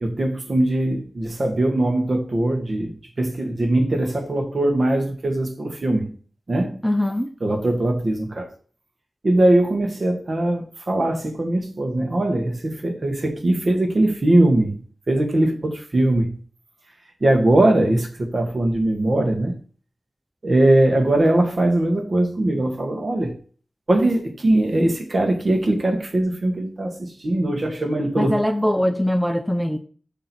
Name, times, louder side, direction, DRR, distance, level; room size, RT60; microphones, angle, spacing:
voice 1, 0.0-6.1 6.5-6.8 7.4-8.5 9.2-16.3 17.2-19.6 20.4-23.3 23.9-28.4, right 1 dB, 45° right, 1.6 m, -21 dB
voice 2, 6.8-7.3 28.2-29.8, left 1 dB, ahead, 0.5 m, -21 dB
6.3 x 4.2 x 6.1 m
wide cardioid pair, 80°, 0 cm